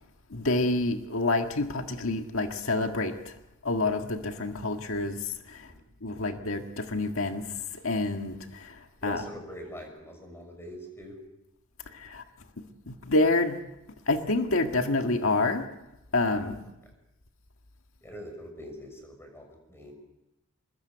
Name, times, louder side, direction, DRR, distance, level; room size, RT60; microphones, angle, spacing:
voice 1, 0.3-3.3 3.6-5.7 6.0-7.5 7.7-9.2 11.9-12.2 12.6-13.6 14.1-15.7 16.1-16.7, left 2 dB, 75° left, 5 dB, 1.8 m, -28 dB
voice 2, 9.0-11.1 18.0-19.9, equal, 10° left, 4 dB, 6.5 m, -43 dB
24.5 x 21.5 x 8.0 m, 0.92 s
head